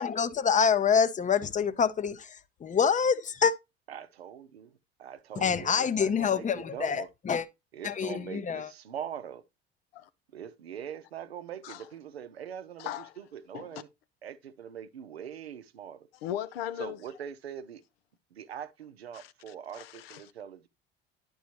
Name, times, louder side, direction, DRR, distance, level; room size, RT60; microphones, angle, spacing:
voice 1, 0.0-2.4 2.6-3.5 5.4-7.4 7.8-8.7, left 6 dB, 25° left, 0.7 m, -26 dB
voice 2, 3.9-4.7 5.0-7.1 7.7-9.4 10.3-13.9 14.2-16.1 16.8-17.8 18.3-20.7, right 9 dB, 85° right, 0.7 m, -42 dB
voice 3, 12.8-13.1 13.5-13.8 16.2-17.0 19.1-20.2, left 11 dB, 75° left, 0.6 m, -38 dB
10.0 x 5.4 x 2.9 m
hypercardioid pair, 65°, 30 cm